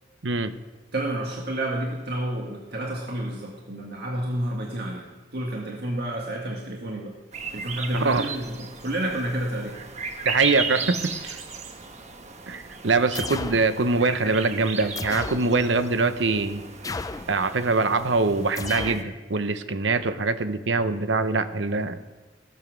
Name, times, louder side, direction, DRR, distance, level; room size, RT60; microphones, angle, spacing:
voice 1, 0.2-0.6 7.9-8.2 10.2-11.4 12.5-16.6 17.3-22.0, right 3 dB, 85° right, 11 dB, 0.9 m, -23 dB
voice 2, 0.9-7.1 7.5-9.8, right 1 dB, 60° right, -1 dB, 1.8 m, -30 dB
sound 1, 7.3-19.0, right 4 dB, 40° right, 1.2 m, -36 dB
sound 2, 13.1-13.7 15.0-15.5 16.8-17.3 18.6-19.1, left 3 dB, 20° left, 0.4 m, -33 dB
17.0 x 7.1 x 6.3 m, 1.3 s
head